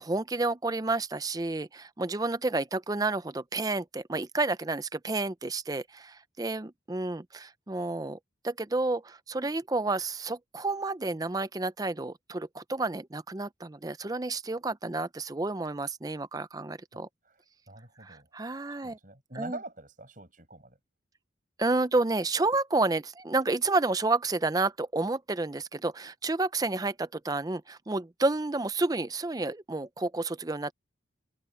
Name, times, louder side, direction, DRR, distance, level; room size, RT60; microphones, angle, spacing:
voice 1, 0.0-8.2 8.4-17.1 18.0-19.0 19.4-19.6 21.6-30.7, right 2 dB, 20° right, 0.5 m, -30 dB
voice 2, 16.9-18.3 18.7-20.8, right 2 dB, 45° right, 6.8 m, -45 dB
head